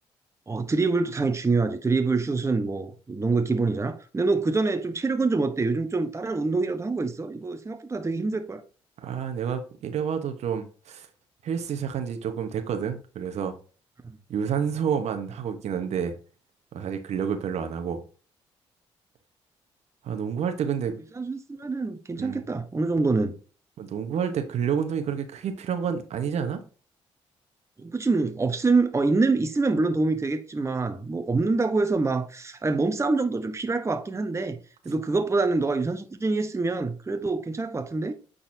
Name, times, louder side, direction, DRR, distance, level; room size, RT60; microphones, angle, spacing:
voice 1, 0.5-8.6 14.0-14.2 21.2-23.3 27.8-34.6 34.8-38.1, right 3 dB, 25° right, 1.0 m, -25 dB
voice 2, 9.0-11.1 11.4-13.6 14.3-16.1 16.7-18.0 20.0-20.9 22.2-22.4 23.8-26.6, right 7 dB, 70° right, 1.1 m, -29 dB
8.9 x 4.1 x 2.7 m
supercardioid pair, 60°, 12 cm